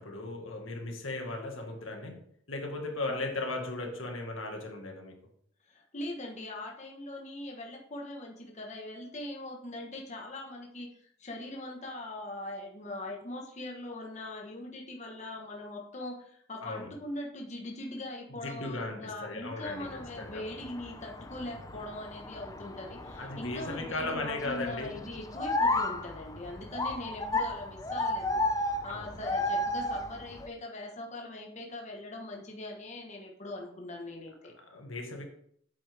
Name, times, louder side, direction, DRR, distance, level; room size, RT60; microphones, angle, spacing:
voice 1, 0.0-2.2 2.5-5.2 16.6-16.9 18.4-20.5 23.2-25.1 28.9-29.3 34.7-35.3, left 2 dB, 90° left, 3 dB, 1.7 m, -37 dB
voice 2, 5.7-34.5, left 1 dB, 35° left, 0 dB, 1.3 m, -41 dB
sound 1, 19.6-30.5, left 2 dB, 15° left, 0.6 m, -34 dB
8.4 x 8.0 x 3.5 m, 0.66 s
head